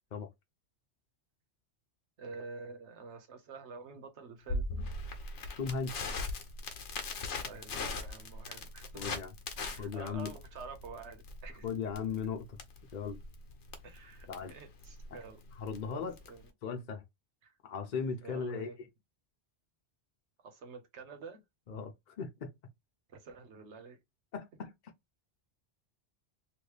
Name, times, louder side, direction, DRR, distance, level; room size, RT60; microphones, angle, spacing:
voice 1, 2.2-4.7 7.4-9.2 9.6-11.7 13.8-15.4 15.9-16.5 17.4-17.5 18.2-18.8 20.4-21.4 23.1-24.0, right 4 dB, 75° right, 1.2 m, -48 dB
Crackle, 4.5-16.5, left 3 dB, 90° left, 1.1 m, -40 dB
voice 2, 5.6-6.2 8.9-9.3 9.8-10.4 11.6-12.6 12.9-13.2 14.3-14.5 15.6-16.2 16.6-17.0 17.6-18.7 21.7-22.5 24.3-24.7, left 5 dB, 50° left, 0.7 m, -37 dB
3.0 x 2.6 x 3.2 m
omnidirectional pair, 1.2 m